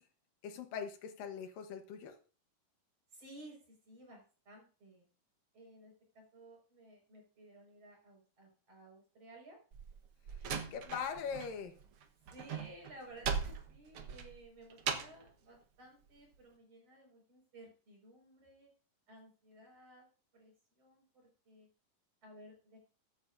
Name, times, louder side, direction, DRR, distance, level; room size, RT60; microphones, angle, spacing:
voice 1, 0.4-2.2 10.7-11.7, left 7 dB, 75° left, 6 dB, 2.8 m, -41 dB
voice 2, 3.1-5.0 5.5-9.6 10.8-11.0 12.3-18.7 19.1-20.1 20.3-21.0 21.5-21.7 22.2-22.8, right 1 dB, 45° right, 0 dB, 6.3 m, -56 dB
Slam, 9.7-11.5 11.8-15.3, right 6 dB, 60° right, 1.4 m, -39 dB
14.5 x 12.0 x 2.6 m, 0.37 s
omnidirectional pair, 4.0 m